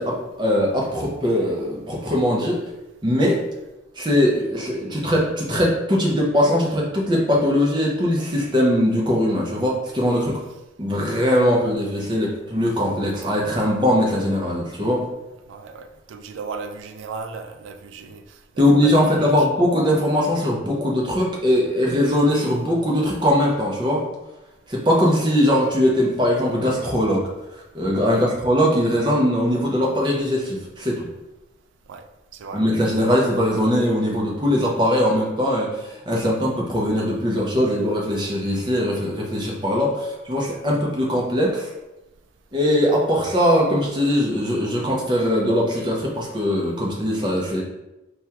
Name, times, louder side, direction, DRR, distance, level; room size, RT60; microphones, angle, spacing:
voice 1, 0.0-2.6 3.0-3.4 4.0-10.4 10.8-15.0 18.6-24.1 24.7-27.2 27.7-31.1 32.5-41.7 42.5-47.6, equal, 25° right, -2 dB, 0.6 m, -21 dB
voice 2, 15.5-19.2 28.1-28.3 31.9-32.0 32.3-32.6, right 4 dB, 80° right, 7 dB, 0.3 m, -36 dB
3.4 x 2.2 x 2.8 m, 0.98 s
head